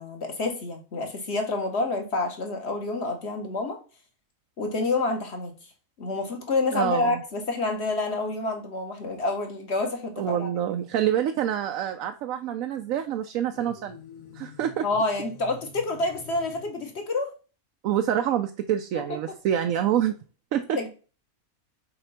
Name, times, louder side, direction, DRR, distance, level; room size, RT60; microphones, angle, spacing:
voice 1, 0.0-3.8 4.6-5.5 6.0-10.5 14.8-17.3 19.1-19.2 20.7-20.9, left 3 dB, 50° left, 1.7 m, -28 dB
voice 2, 6.7-7.2 10.2-14.0 14.3-14.9 17.8-20.2 20.5-20.9, right 10 dB, 75° right, 1.0 m, -26 dB
sound 1, 13.5-17.0, left 4 dB, 70° left, 1.9 m, -47 dB
6.7 x 3.9 x 5.7 m
omnidirectional pair, 1.5 m